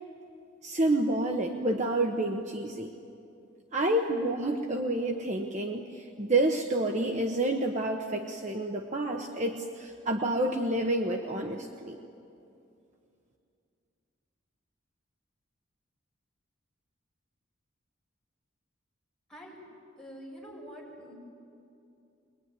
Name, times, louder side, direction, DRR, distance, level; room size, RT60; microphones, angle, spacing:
voice 1, 0.6-2.9 3.7-12.0, right 1 dB, 35° right, 3 dB, 1.1 m, -29 dB
voice 2, 20.0-21.1, equal, 5° left, -6 dB, 7.2 m, -46 dB
22.5 x 21.5 x 9.7 m, 2.6 s
head